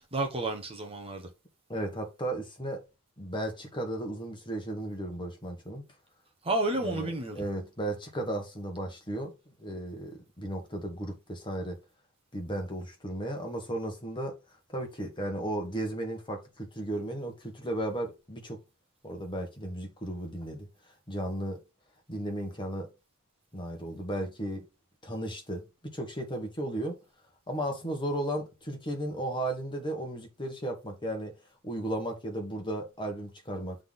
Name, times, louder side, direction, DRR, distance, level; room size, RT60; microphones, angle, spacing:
voice 1, 0.1-1.2 6.5-7.4, right 2 dB, 25° right, 1.2 m, -30 dB
voice 2, 1.7-2.8 3.2-5.9 6.8-9.3 9.6-11.8 12.3-14.3 14.7-18.6 19.0-20.7 21.1-21.6 22.1-22.9 23.5-24.7 25.0-27.0 27.5-31.3 31.6-33.8, right 1 dB, 20° left, 1.6 m, -35 dB
8.2 x 3.9 x 3.8 m
head